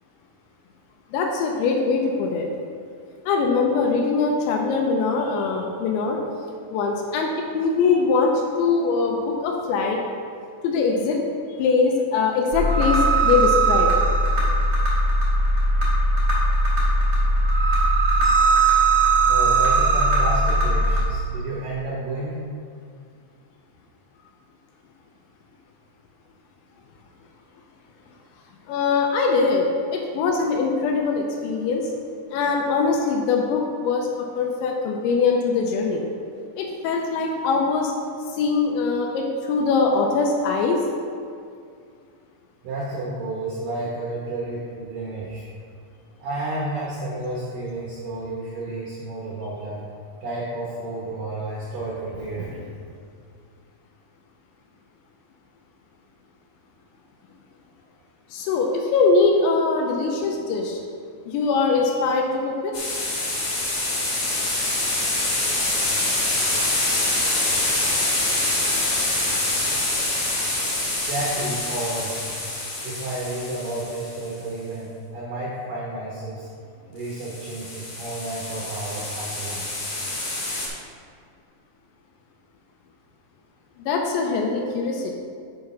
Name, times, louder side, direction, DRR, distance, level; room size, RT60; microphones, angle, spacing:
voice 1, 1.1-2.5 3.3-6.2 6.7-10.0 10.6-11.2 11.6-13.9 28.7-31.9 32.3-36.0 36.6-37.9 38.3-40.9 58.3-60.8 61.3-62.7 83.8-85.1, left 4 dB, 80° left, 1 dB, 2.8 m, -22 dB
sound 1, 12.5-21.0, right 2 dB, 35° right, 1.7 m, -19 dB
voice 2, 19.3-22.4 42.6-45.4 46.2-49.8 50.2-52.7 71.0-72.2 72.8-76.5 76.9-79.8, right 2 dB, 80° right, -5 dB, 2.0 m, -31 dB
sound 2, 62.7-74.2 77.1-80.7, left 2 dB, 45° left, 2.3 m, -25 dB
6.8 x 6.5 x 5.6 m, 2.3 s
omnidirectional pair, 5.6 m